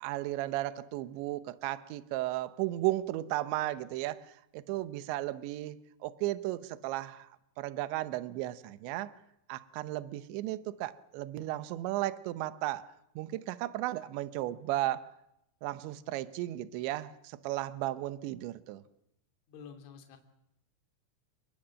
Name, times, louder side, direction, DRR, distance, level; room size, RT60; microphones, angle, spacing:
voice 1, 0.0-4.3 4.5-7.3 7.6-9.1 9.5-15.1 15.6-18.8, right 16 dB, 75° right, 14 dB, 3.0 m, -35 dB
voice 2, 19.5-20.2, left 6 dB, 70° left, 5 dB, 5.1 m, -49 dB
29.5 x 20.0 x 7.6 m, 0.84 s
omnidirectional pair, 5.9 m